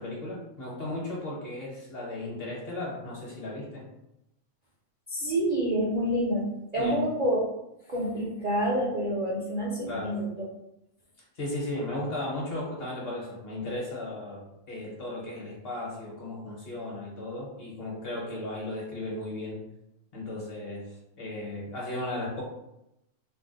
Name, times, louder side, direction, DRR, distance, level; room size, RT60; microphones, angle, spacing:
voice 1, 0.0-3.9 6.8-7.0 9.9-10.1 11.3-19.6 20.1-20.9 21.2-22.4, left 1 dB, 50° left, -3 dB, 0.9 m, -35 dB
voice 2, 5.1-7.5 7.9-10.2, equal, 50° right, -6 dB, 0.5 m, -28 dB
2.5 x 2.0 x 3.7 m, 0.86 s
omnidirectional pair, 1.4 m